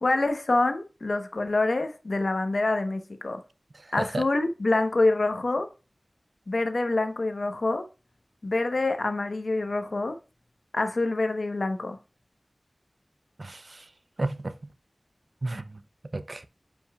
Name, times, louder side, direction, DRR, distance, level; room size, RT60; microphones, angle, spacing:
voice 1, 0.0-3.4 3.9-5.7 6.5-7.8 8.4-10.2 10.7-12.0, left 2 dB, 75° left, 1.0 m, -26 dB
voice 2, 3.7-4.2 13.4-13.9 14.2-14.5 15.4-15.8 16.1-16.4, right 2 dB, 60° right, 0.5 m, -33 dB
9.9 x 5.4 x 2.3 m
wide cardioid pair, 50°, 0 cm